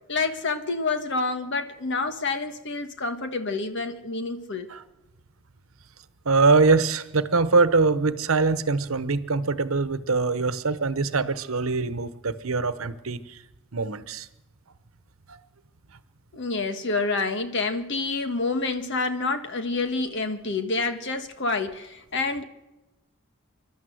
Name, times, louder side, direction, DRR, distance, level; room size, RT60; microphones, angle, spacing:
voice 1, 0.1-4.7 16.3-22.4, left 3 dB, 60° left, 8 dB, 1.5 m, -28 dB
voice 2, 6.2-13.4 13.7-14.3 15.3-15.4, right 4 dB, 80° right, 13 dB, 1.0 m, -23 dB
27.0 x 12.0 x 7.9 m, 1.0 s
head